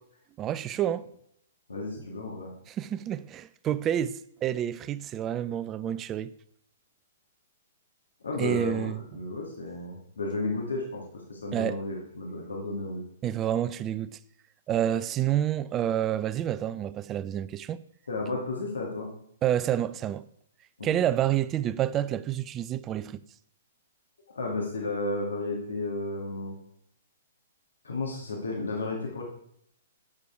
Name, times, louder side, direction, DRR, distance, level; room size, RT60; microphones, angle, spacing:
voice 1, 0.4-1.1 2.0-2.1 2.7-6.3 8.4-9.0 11.5-11.8 13.2-14.2 14.7-17.8 19.4-20.2 20.8-23.2, right 11 dB, 25° right, 0.4 m, -28 dB
voice 2, 1.7-2.5 8.2-13.0 18.1-19.1 20.8-21.0 24.4-26.5 27.8-29.2, left 2 dB, 75° left, 2.0 m, -33 dB
8.5 x 6.7 x 4.6 m
figure-of-eight pair, 120°, 0 cm